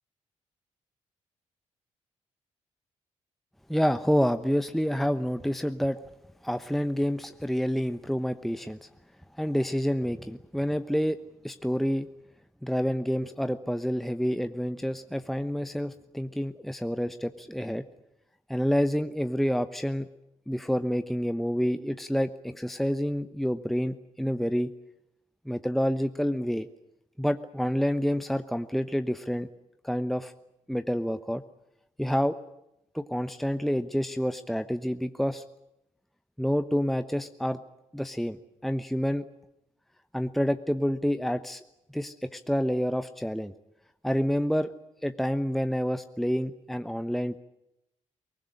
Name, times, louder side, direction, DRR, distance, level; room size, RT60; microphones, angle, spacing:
voice 1, 3.7-6.0 6.4-8.9 9.4-11.2 11.4-12.1 12.6-17.8 18.5-20.1 20.5-24.7 25.4-26.7 27.2-29.5 29.8-30.3 30.7-31.4 32.0-32.4 32.9-35.4 36.4-37.6 37.9-39.2 40.1-41.6 41.9-43.5 44.0-44.7 45.0-47.4, equal, ahead, 10 dB, 1.0 m, -28 dB
22.5 x 19.5 x 10.0 m, 0.87 s
hypercardioid pair, 40°, 15 cm